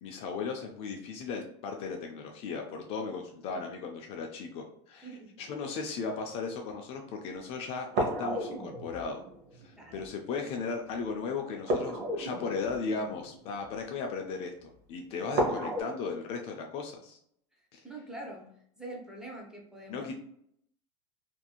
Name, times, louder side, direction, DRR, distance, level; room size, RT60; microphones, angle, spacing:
voice 1, 0.0-5.1 5.4-9.3 9.6-17.2 17.7-17.8 19.9-20.1, left 4 dB, 40° left, 3 dB, 0.4 m, -36 dB
voice 2, 5.0-5.4 9.7-10.0 17.5-20.1, right 2 dB, 5° right, -2 dB, 0.6 m, -45 dB
sound 1, 7.9-10.1 11.6-13.9 15.3-15.8, right 1 dB, 55° right, 0.8 m, -33 dB
2.9 x 2.6 x 2.3 m, 0.68 s
supercardioid pair, 150°, 15 cm